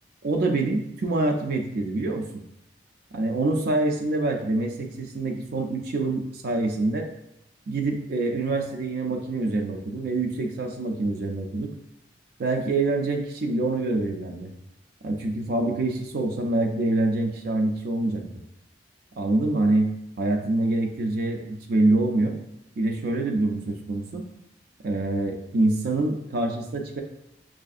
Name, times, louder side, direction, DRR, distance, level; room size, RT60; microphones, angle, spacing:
voice 1, 0.2-2.3 3.1-7.1 7.7-11.7 12.4-14.5 15.0-18.2 19.2-19.9 20.2-22.3 22.8-24.2 24.8-27.0, right 2 dB, 60° right, 2 dB, 0.4 m, -25 dB
5.5 x 2.5 x 2.4 m, 0.81 s
head